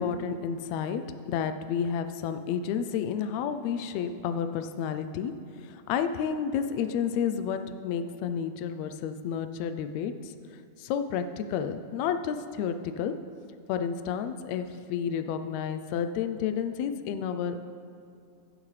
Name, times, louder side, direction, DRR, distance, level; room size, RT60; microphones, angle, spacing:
voice 1, 0.0-5.3 5.6-10.3 10.8-13.2 13.7-17.6, left 7 dB, 80° left, 9 dB, 1.8 m, -31 dB
16.0 x 11.0 x 3.3 m, 2.5 s
omnidirectional pair, 3.3 m